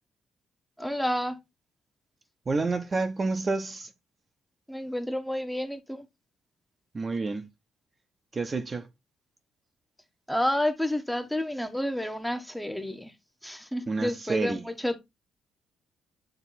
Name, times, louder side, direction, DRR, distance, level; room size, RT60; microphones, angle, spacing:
voice 1, 0.8-1.4 4.7-6.0 10.3-13.1 13.4-15.0, left 1 dB, 5° left, 1.3 m, -30 dB
voice 2, 2.5-3.9 6.9-7.4 8.3-8.9 13.9-14.6, right 3 dB, 30° right, 1.0 m, -29 dB
9.2 x 3.4 x 4.1 m
cardioid pair, 90°, 0 cm